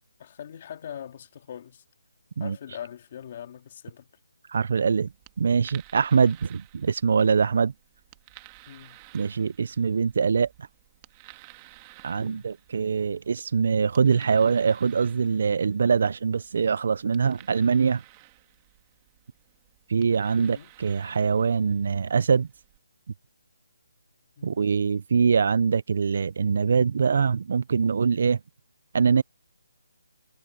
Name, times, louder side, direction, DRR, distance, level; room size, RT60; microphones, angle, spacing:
voice 1, 0.2-1.8 2.4-4.1 8.7-9.0 12.1-12.5 20.4-20.7 24.4-24.6, left 9 dB, 30° left, 3.1 m, -42 dB
voice 2, 4.5-5.1 5.4-7.7 9.1-10.5 12.0-18.0 19.9-22.5 24.4-28.4 28.9-29.2, right 5 dB, 45° right, 0.4 m, -23 dB
sound 1, 5.0-22.8, right 21 dB, 15° right, 1.7 m, -54 dB
hypercardioid pair, 175°, 0 cm